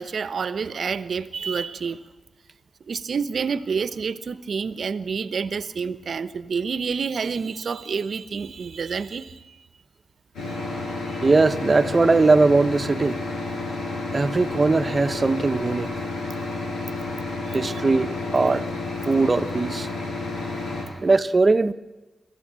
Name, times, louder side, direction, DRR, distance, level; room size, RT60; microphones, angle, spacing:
voice 1, 0.0-2.1 2.9-9.7 10.5-10.6 17.5-17.6, right 5 dB, 60° right, 0.9 m, -28 dB
sound 1, 10.3-20.8, left 2 dB, 85° left, 7.1 m, -30 dB
voice 2, 11.2-13.2 14.1-15.9 17.5-18.7 19.1-19.9 21.0-21.7, right 3 dB, 35° right, 0.9 m, -20 dB
26.5 x 14.5 x 7.6 m
cardioid pair, 65°, 0 cm